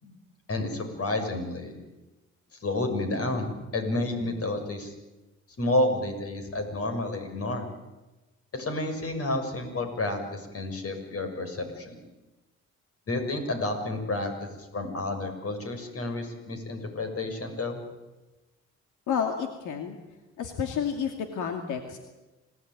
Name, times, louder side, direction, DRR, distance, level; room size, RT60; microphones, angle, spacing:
voice 1, 0.5-1.7 2.6-4.9 5.6-7.7 8.5-12.0 13.1-17.8, left 2 dB, 50° left, 6 dB, 6.8 m, -30 dB
voice 2, 19.1-20.0 20.4-22.0, left 7 dB, 85° left, 5 dB, 2.5 m, -30 dB
27.0 x 18.5 x 9.5 m, 1.1 s
cardioid pair, 90°, 30 cm